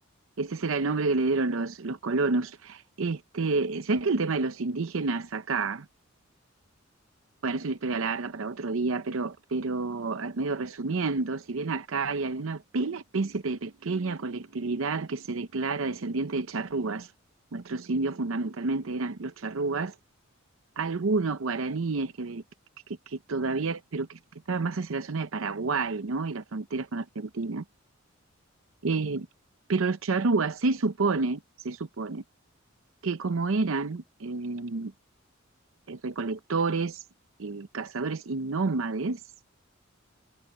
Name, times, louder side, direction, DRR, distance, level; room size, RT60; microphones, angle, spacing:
voice 1, 0.4-5.9 7.4-17.1 17.5-19.9 20.8-22.4 23.1-24.2 24.5-27.6 28.8-29.3 29.7-32.2 33.0-34.9 35.9-37.0 37.4-39.2, right 3 dB, 70° right, 0.7 m, -29 dB
head